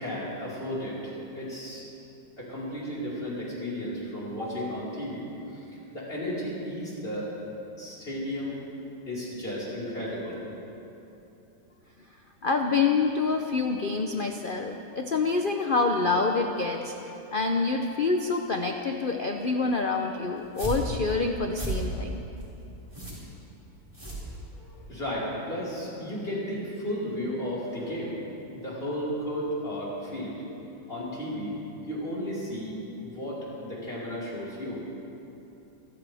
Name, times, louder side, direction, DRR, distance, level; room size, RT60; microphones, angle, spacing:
voice 1, 0.0-1.8 2.4-7.3 7.7-8.6 9.0-10.3 24.5-28.2 28.5-30.3 30.9-31.5 31.9-34.8, equal, 30° left, -7 dB, 4.9 m, -34 dB
voice 2, 12.4-17.0 17.3-22.2, left 4 dB, 70° left, 4 dB, 0.5 m, -26 dB
sound 1, 20.4-24.9, right 2 dB, 10° right, 4.8 m, -35 dB
27.5 x 14.5 x 3.5 m, 2.9 s
omnidirectional pair, 2.0 m